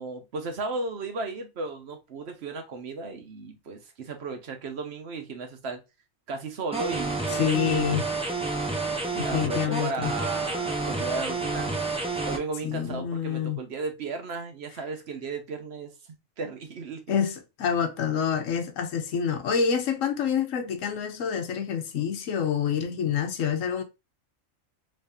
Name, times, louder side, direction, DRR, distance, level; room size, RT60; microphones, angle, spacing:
voice 1, 0.0-5.8 6.3-7.5 9.2-11.7 12.2-15.9 16.4-17.0, right 3 dB, 55° right, 1.1 m, -35 dB
sound 1, 6.7-12.4, right 3 dB, 5° right, 0.6 m, -29 dB
voice 2, 7.3-8.1 9.1-10.1 12.6-13.6 17.1-23.8, left 7 dB, 80° left, 1.1 m, -27 dB
3.2 x 2.7 x 3.4 m
omnidirectional pair, 1.4 m